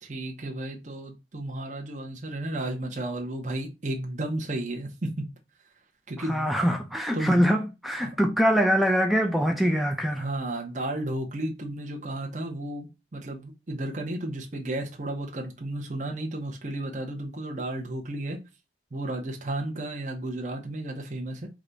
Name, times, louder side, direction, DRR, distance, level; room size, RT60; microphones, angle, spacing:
voice 1, 0.0-5.2 6.1-6.5 7.1-7.4 8.0-8.1 10.1-18.4 18.9-21.5, right 1 dB, 45° right, 0.8 m, -33 dB
voice 2, 6.3-10.2, equal, ahead, 0.3 m, -23 dB
4.8 x 2.3 x 3.9 m
head